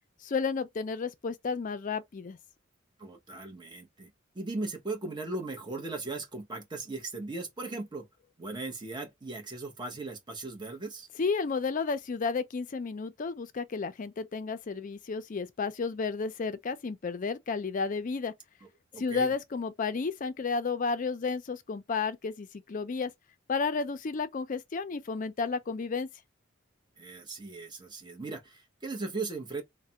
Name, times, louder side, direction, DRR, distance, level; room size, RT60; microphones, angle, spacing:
voice 1, 0.2-2.4 11.2-18.3 19.0-23.1 23.5-26.1, left 4 dB, 40° left, 0.4 m, -32 dB
voice 2, 3.0-4.1 4.3-8.1 8.4-11.1 18.9-19.3 27.0-29.6, right 3 dB, 20° right, 0.8 m, -38 dB
3.2 x 2.1 x 2.8 m
head